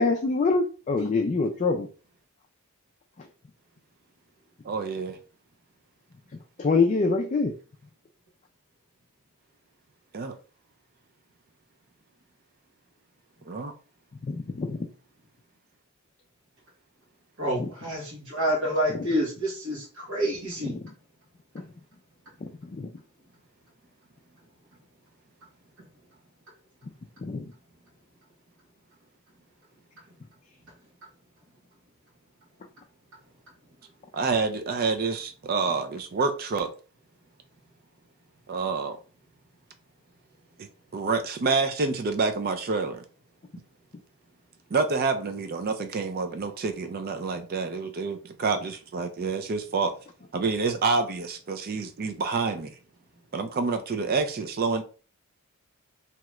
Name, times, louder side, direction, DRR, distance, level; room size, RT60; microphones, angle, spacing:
voice 1, 0.0-1.9 6.6-7.5 14.2-14.9 17.6-17.7 18.9-19.1 20.6-20.7 21.5-21.6 22.4-22.9 27.2-27.5, left 3 dB, 30° left, 0.3 m, -25 dB
voice 2, 4.6-5.2 10.1-10.4 13.5-13.7 34.1-36.7 38.5-39.0 40.6-40.7 40.9-43.0 44.7-49.9 50.3-52.7 53.3-54.8, right 4 dB, 40° right, 0.4 m, -28 dB
voice 3, 17.4-20.8, equal, 60° right, 1.1 m, -28 dB
2.8 x 2.4 x 3.1 m
head